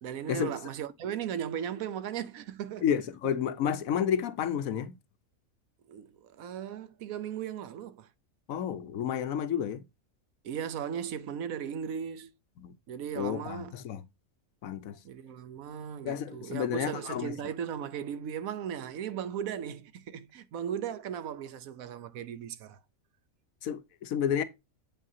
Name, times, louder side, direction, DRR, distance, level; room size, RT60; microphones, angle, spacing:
voice 1, 0.0-2.9 3.2-3.4 5.9-8.1 10.4-12.3 12.9-13.8 15.0-22.8, right 8 dB, 85° right, 1.2 m, -37 dB
voice 2, 2.8-5.0 8.5-9.8 12.6-12.7 13.2-14.0 14.6-14.9 16.0-17.3 23.6-24.4, left 8 dB, 90° left, 1.2 m, -31 dB
8.1 x 5.6 x 2.7 m
omnidirectional pair, 1.4 m